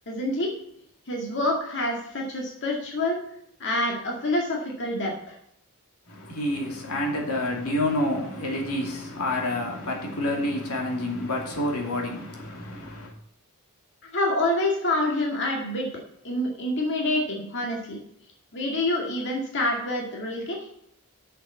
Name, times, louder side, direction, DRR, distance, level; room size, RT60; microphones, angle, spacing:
voice 1, 0.1-0.5 1.1-3.2 3.6-5.4 14.1-15.9 16.2-18.0 18.5-20.6, left 1 dB, 55° left, 2.1 m, -27 dB
voice 2, 6.1-13.1, left 1 dB, 80° left, 2.6 m, -28 dB
7.5 x 6.8 x 7.1 m
head